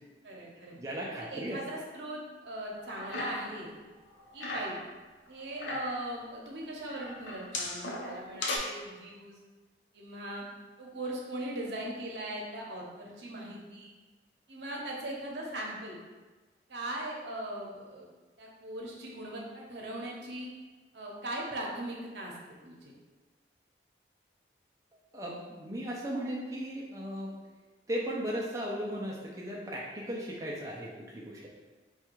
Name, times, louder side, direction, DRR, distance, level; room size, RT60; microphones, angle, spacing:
voice 1, 0.2-0.8 1.1-3.7 4.3-4.8 5.3-9.4 9.9-10.5 10.8-13.9 14.5-16.0 16.7-18.1 18.4-20.5 20.9-22.3 22.6-22.9, right 1 dB, 70° right, -2 dB, 0.8 m, -39 dB
voice 2, 0.7-1.6 25.1-27.3 27.9-31.5, equal, 15° right, -5 dB, 0.4 m, -36 dB
sound 1, 2.8-3.7 3.9-4.9 5.4-6.0 6.9-8.6, left 2 dB, 85° left, 0.6 m, -37 dB
3.4 x 2.3 x 4.4 m, 1.3 s
head